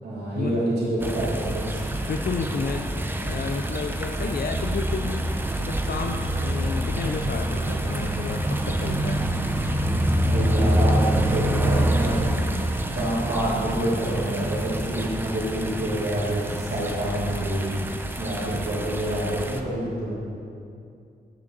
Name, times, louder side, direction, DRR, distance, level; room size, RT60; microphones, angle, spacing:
voice 1, 0.0-1.8 10.2-12.3 12.9-17.6 17.8-20.1, right 1 dB, 80° right, -10 dB, 2.9 m, -27 dB
sound 1, 1.0-19.6, right 1 dB, 15° right, 0.6 m, -26 dB
voice 2, 2.1-5.3 5.6-9.3, left 5 dB, 65° left, 3 dB, 0.5 m, -32 dB
11.0 x 9.3 x 4.0 m, 2.4 s
wide cardioid pair, 140°, 17 cm